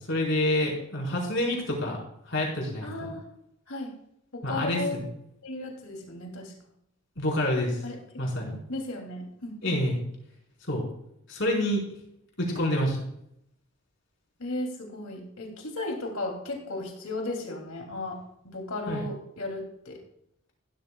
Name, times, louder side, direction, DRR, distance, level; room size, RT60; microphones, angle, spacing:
voice 1, 0.1-2.0 2.3-3.1 4.4-5.1 7.2-7.8 8.2-8.6 9.6-10.0 10.7-10.9 11.3-11.8 12.4-13.0 18.9-19.0, left 1 dB, 55° left, -2 dB, 4.8 m, -27 dB
voice 2, 2.8-3.3 3.7-3.9 4.3-5.0 5.4-6.5 7.8-8.0 8.7-9.9 14.4-20.0, left 2 dB, 75° left, 1 dB, 3.0 m, -35 dB
15.0 x 13.0 x 2.4 m, 0.75 s
head